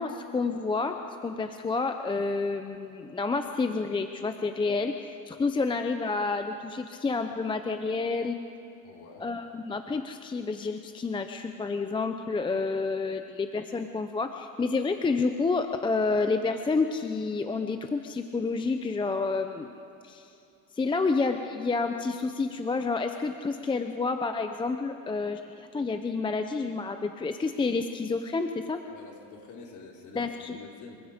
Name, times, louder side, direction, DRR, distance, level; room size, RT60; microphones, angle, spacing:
voice 1, 0.0-8.4 9.2-19.7 20.0-20.3 20.8-28.8 30.1-30.6, left 4 dB, 10° left, 6 dB, 0.6 m, -29 dB
voice 2, 8.8-9.3 28.8-31.0, left 4 dB, 45° left, 0 dB, 4.2 m, -48 dB
26.5 x 24.5 x 5.2 m, 2.6 s
cardioid pair, 145°, 41 cm